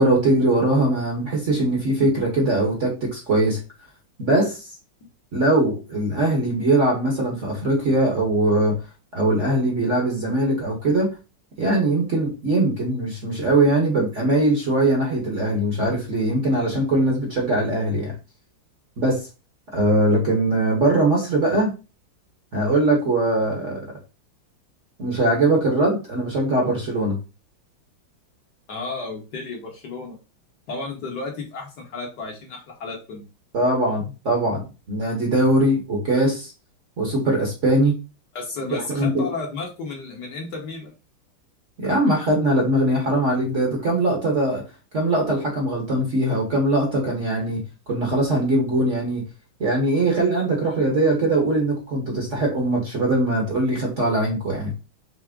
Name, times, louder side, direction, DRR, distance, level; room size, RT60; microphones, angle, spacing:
voice 1, 0.0-3.6 4.2-4.7 5.3-8.7 9.1-11.2 11.6-18.1 19.0-19.3 19.7-21.7 22.5-23.8 25.0-27.2 33.5-36.5 37.0-38.0 38.9-39.3 41.8-44.6 44.9-49.2 49.6-54.7, right 1 dB, 45° right, -1 dB, 1.2 m, -21 dB
voice 2, 28.7-30.2 30.7-33.2 38.3-40.9, left 3 dB, 55° left, 0 dB, 1.5 m, -33 dB
5.9 x 2.1 x 3.6 m, 0.30 s
omnidirectional pair, 2.3 m